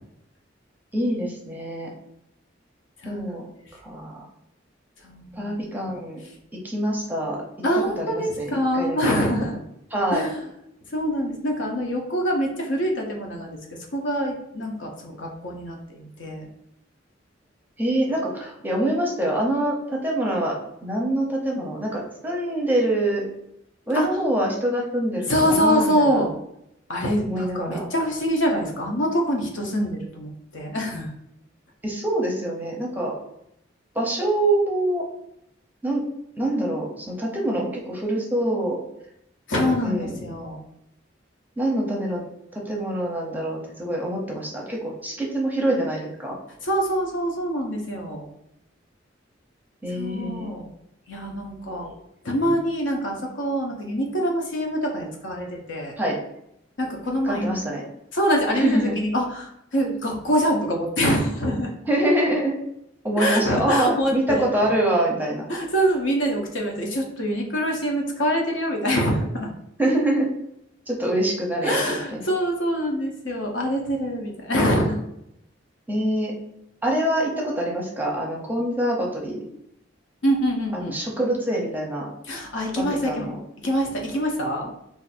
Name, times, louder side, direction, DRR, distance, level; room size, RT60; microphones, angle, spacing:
voice 1, 0.9-1.9 3.0-3.5 3.8-4.3 5.3-6.2 6.6-7.4 8.0-9.3 9.9-10.3 17.8-23.3 23.9-26.2 27.2-27.8 31.8-33.1 33.9-35.0 35.8-36.0 36.4-38.8 39.8-40.1 41.6-42.2 42.5-46.4 49.8-50.5 51.8-51.9 52.4-52.6 56.0-56.2 57.2-57.8 58.5-59.0 61.9-62.6 63.0-65.5 69.8-70.3 70.9-72.2 75.9-76.3 76.8-79.4 80.7-82.1 82.8-83.4, right 1 dB, 10° right, -1 dB, 0.6 m, -25 dB
voice 2, 3.0-3.3 5.0-5.6 7.6-9.6 10.1-10.4 10.9-13.6 13.9-16.5 23.9-24.1 25.3-26.3 26.9-31.1 39.5-40.6 46.6-48.3 50.0-50.7 51.1-51.9 52.2-56.0 56.8-57.5 58.1-61.7 63.2-64.5 65.5-69.5 71.6-75.0 80.2-80.9 82.3-83.3 83.6-84.7, equal, 70° left, 1 dB, 0.7 m, -25 dB
2.5 x 2.5 x 4.1 m, 0.80 s
head